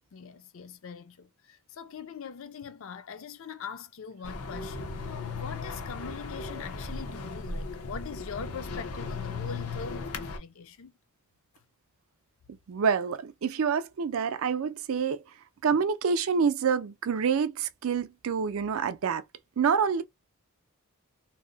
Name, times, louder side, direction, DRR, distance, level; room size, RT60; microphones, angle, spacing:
voice 1, 0.1-10.9 15.7-15.8, left 6 dB, 60° left, 0.5 m, -42 dB
sound 1, 4.2-10.4, left 3 dB, 85° left, 0.8 m, -37 dB
voice 2, 12.7-15.2 15.6-19.2 19.6-20.0, right 6 dB, 65° right, 0.4 m, -27 dB
2.7 x 2.1 x 3.8 m
head